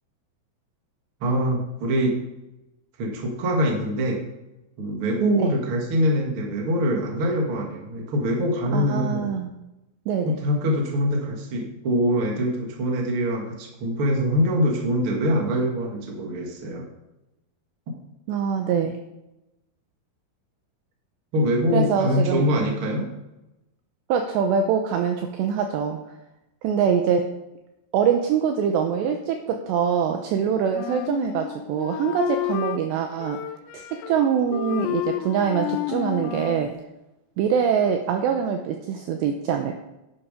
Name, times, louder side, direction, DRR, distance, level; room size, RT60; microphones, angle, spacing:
voice 1, 1.2-2.2 3.0-4.2 4.8-9.4 10.2-16.9 21.3-23.1, equal, 45° right, 0 dB, 1.8 m, -24 dB
voice 2, 8.7-9.5 10.1-10.3 18.3-19.0 21.7-22.5 24.1-26.0 26.6-27.3 27.9-33.4 33.7-36.7 37.4-39.8, right 7 dB, 80° right, 4 dB, 2.6 m, -24 dB
Wind instrument woodwind instrument, 30.7-32.8 33.2-34.2 34.5-36.7, left 13 dB, 90° left, 2.4 m, -30 dB
11.0 x 9.9 x 5.2 m, 0.93 s
omnidirectional pair, 5.8 m